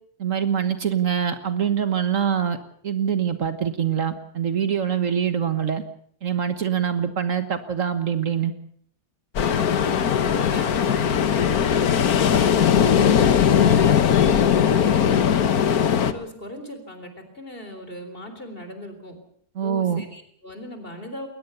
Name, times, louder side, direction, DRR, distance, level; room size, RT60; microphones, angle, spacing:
voice 1, 0.2-2.6 2.8-5.8 6.2-8.5 19.5-20.0, right 8 dB, 60° right, 10 dB, 1.6 m, -24 dB
Ocean, 9.4-16.1, left 8 dB, 75° left, 1.6 m, -19 dB
voice 2, 9.6-13.9 14.3-19.1 19.6-21.3, left 1 dB, 35° left, 7 dB, 4.1 m, -38 dB
21.5 x 19.0 x 7.0 m, 0.63 s
omnidirectional pair, 1.6 m